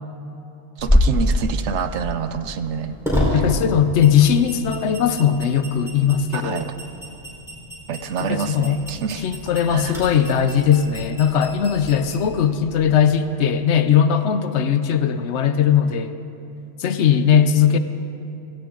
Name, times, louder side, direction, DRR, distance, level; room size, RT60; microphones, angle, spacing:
sound 1, 0.8-13.0, left 1 dB, ahead, 4.2 m, -27 dB
voice 1, 0.8-3.0 3.3-3.4 6.3-6.7 7.9-9.3 9.7-10.0, right 6 dB, 75° right, 10 dB, 1.0 m, -27 dB
voice 2, 3.3-6.7 8.2-8.8 9.2-16.2 16.8-17.8, left 8 dB, 70° left, 11 dB, 1.0 m, -19 dB
17.0 x 16.5 x 3.8 m, 2.9 s
omnidirectional pair, 1.2 m